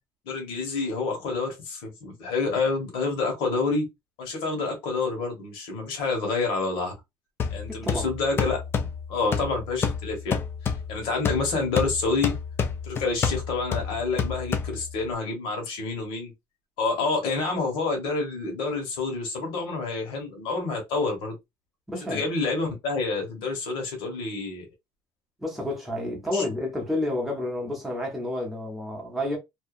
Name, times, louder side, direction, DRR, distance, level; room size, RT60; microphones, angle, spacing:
voice 1, 0.2-3.9 4.2-6.9 7.5-8.6 9.1-10.4 10.6-12.3 12.8-16.3 16.8-21.4 22.1-24.6 26.3-26.4, left 3 dB, 85° left, 1.3 m, -28 dB
sound 1, 7.4-15.1, left 6 dB, 30° left, 0.4 m, -30 dB
voice 2, 7.7-8.1 21.9-22.2 25.4-29.4, left 1 dB, 5° right, 0.7 m, -30 dB
2.7 x 2.3 x 2.4 m
cardioid pair, 150°, 8 cm